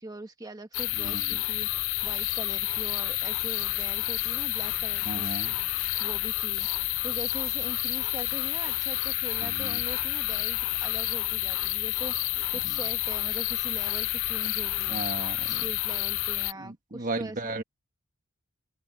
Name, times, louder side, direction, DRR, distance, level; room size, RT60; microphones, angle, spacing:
voice 1, 0.0-5.6 6.0-6.7 7.0-15.0 15.5-17.6, right 1 dB, 20° right, 1.4 m, -42 dB
sound 1, 0.7-16.5, left 18 dB, 80° left, 0.5 m, -29 dB
voice 2, 1.0-1.4 5.0-5.5 9.4-9.8 12.6-12.8 14.9-15.6 16.6-17.6, right 2 dB, 40° right, 1.7 m, -36 dB
head